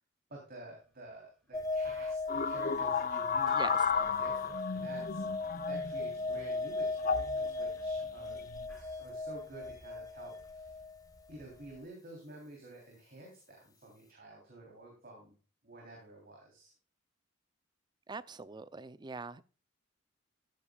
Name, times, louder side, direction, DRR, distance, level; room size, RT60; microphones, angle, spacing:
voice 1, 0.3-5.2 5.7-8.4 8.8-10.8 11.3-15.3 15.6-16.7, right 2 dB, 50° right, -1 dB, 3.3 m, -50 dB
sound 1, 1.1-1.2 1.5-9.5, right 1 dB, ahead, 4.4 m, -59 dB
sound 2, 1.5-11.8, left 3 dB, 20° left, 1.4 m, -38 dB
sound 3, 2.3-6.1 7.0-7.3 8.3-8.6, left 6 dB, 45° left, 0.6 m, -33 dB
voice 2, 3.5-3.9 18.1-19.4, right 4 dB, 20° right, 17 dB, 0.4 m, -42 dB
14.5 x 8.5 x 2.3 m, 0.37 s
head